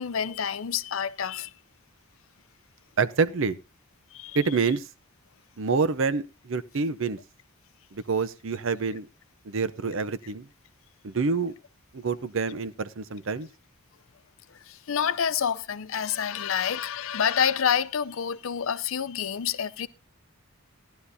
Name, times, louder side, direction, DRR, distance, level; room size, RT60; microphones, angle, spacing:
voice 1, 0.0-1.5 4.1-4.4 14.7-19.9, left 8 dB, 65° left, 0.5 m, -28 dB
voice 2, 3.0-3.6 4.3-4.8 5.6-7.2 7.9-9.1 9.4-10.5 11.0-11.5 11.9-13.5, right 4 dB, 60° right, 0.6 m, -27 dB
17.0 x 11.5 x 2.7 m
head